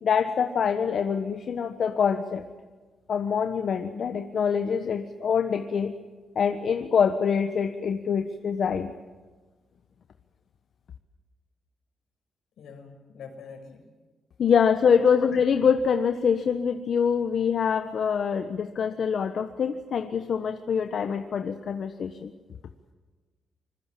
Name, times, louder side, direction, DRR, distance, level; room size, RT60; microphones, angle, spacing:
voice 1, 0.0-2.4 3.1-5.9 6.3-8.9 14.4-22.3, left 6 dB, 65° left, 7 dB, 1.3 m, -25 dB
voice 2, 12.6-13.8 14.9-15.1, left 5 dB, 85° left, 5 dB, 5.6 m, -44 dB
25.5 x 22.0 x 7.7 m, 1.4 s
cardioid pair, 100°, 0 cm